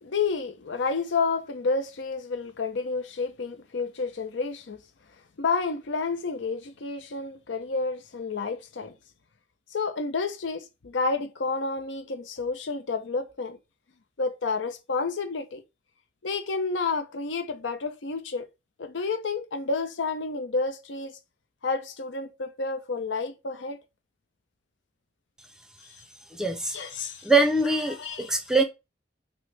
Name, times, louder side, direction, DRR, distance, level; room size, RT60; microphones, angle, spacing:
voice 1, 0.0-4.8 5.4-8.9 9.7-13.6 14.2-15.6 16.2-18.5 18.8-21.2 21.6-23.8 26.7-27.3 27.9-28.3, left 4 dB, 90° left, 0.6 m, -30 dB
voice 2, 26.3-26.8 27.2-28.6, right 2 dB, 5° right, 0.5 m, -23 dB
6.1 x 2.1 x 3.3 m
head